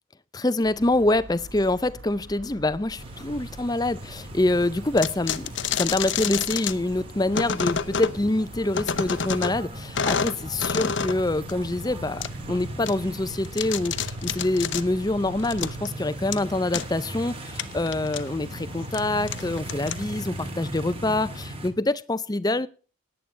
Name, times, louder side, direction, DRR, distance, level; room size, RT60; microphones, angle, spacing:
voice 1, 0.3-5.5 5.7-22.7, left 2 dB, 20° left, 0.6 m, -26 dB
sound 1, 0.6-15.9, right 1 dB, 55° right, 1.3 m, -46 dB
sound 2, 3.0-21.7, right 1 dB, 25° right, 2.1 m, -38 dB
sound 3, 5.0-6.7 7.3-8.2 8.7-9.6 10.0-11.2 11.5-11.6 12.2-12.3 12.9-13.0 13.3-14.8 15.4-15.9 16.3-16.4 16.7-16.9 17.6-18.2 18.8-19.0 19.3-20.3, left 6 dB, 60° left, 0.9 m, -28 dB
17.5 x 10.0 x 3.3 m
head